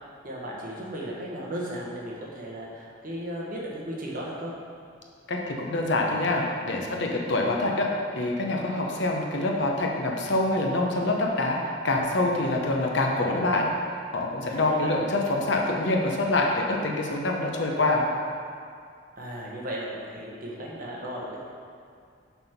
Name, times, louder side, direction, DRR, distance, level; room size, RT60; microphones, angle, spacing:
voice 1, 0.2-4.5 14.4-14.9 19.2-21.4, equal, 45° right, -4 dB, 1.1 m, -35 dB
voice 2, 5.3-7.9 8.1-11.6 11.8-13.7 14.1-18.0, left 2 dB, 65° left, 0 dB, 0.8 m, -25 dB
6.0 x 3.6 x 5.7 m, 2.3 s
head